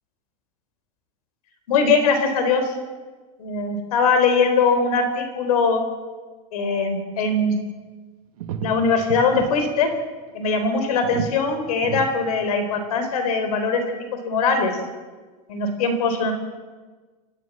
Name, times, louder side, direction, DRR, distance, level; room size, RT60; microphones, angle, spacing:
voice 1, 1.7-2.7 3.4-5.8 6.5-7.6 8.6-9.9 10.3-13.8 14.2-14.7 15.5-16.3, left 4 dB, 90° left, 7 dB, 4.1 m, -21 dB
sound 1, 7.8-7.9 8.4-9.5 9.8-10.0 10.3-10.4 10.9-11.4 11.8-12.1 12.6-12.7, right 9 dB, 75° right, 2.4 m, -31 dB
28.0 x 12.5 x 7.3 m, 1.4 s
supercardioid pair, 165°, 19 cm